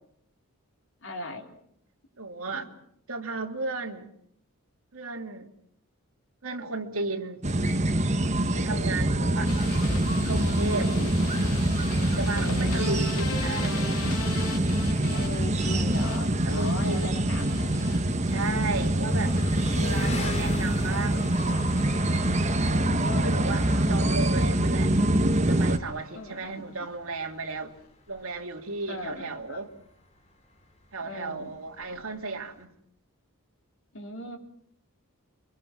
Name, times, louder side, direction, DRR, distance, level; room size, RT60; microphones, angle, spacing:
voice 1, 1.0-1.6 2.5-2.8 8.7-9.1 10.7-11.1 12.3-13.3 15.1-18.0 18.5-20.1 22.6-24.2 26.1-26.9 28.9-29.6 31.0-31.5 33.9-34.4, left 1 dB, 60° left, 3 dB, 3.8 m, -40 dB
voice 2, 2.2-2.7 3.1-4.1 4.9-5.5 6.4-7.5 8.4-9.5 10.2-10.9 12.0-13.7 16.4-17.2 18.2-19.3 19.7-21.3 23.2-23.6 23.9-24.9 25.4-27.7 28.1-29.7 30.9-32.7, right 3 dB, 75° right, 1 dB, 2.9 m, -34 dB
sound 1, 7.4-25.8, right 1 dB, 30° right, 1.4 m, -25 dB
sound 2, 9.5-21.6 21.9-22.5 22.8-23.4 23.7-23.9 24.3-24.4 24.6-24.7, left 2 dB, 90° left, 3.1 m, -37 dB
Engine, 14.9-32.7, left 2 dB, 30° left, 3.2 m, -42 dB
29.0 x 23.5 x 6.1 m, 0.69 s
head